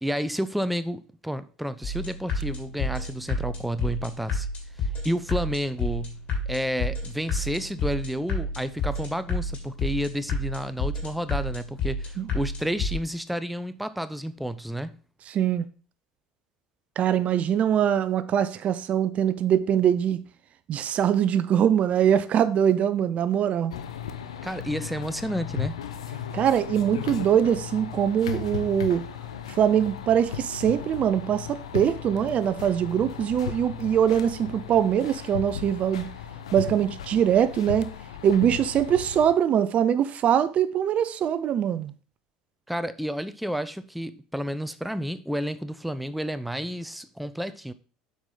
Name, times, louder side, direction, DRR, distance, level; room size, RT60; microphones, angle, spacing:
voice 1, 0.0-4.5 4.8-6.2 6.5-14.9 24.4-25.8 42.7-47.7, equal, ahead, 0.5 m, -31 dB
sound 1, 1.8-12.9, left 2 dB, 45° left, 3.1 m, -31 dB
voice 2, 15.3-15.6 17.0-20.2 20.7-23.7 26.3-29.0 29.5-36.1 36.5-37.9 38.2-41.9, right 9 dB, 45° right, 0.5 m, -23 dB
sound 2, 23.7-39.3, left 8 dB, 90° left, 0.6 m, -36 dB
8.0 x 4.9 x 3.8 m
hypercardioid pair, 75°, 3 cm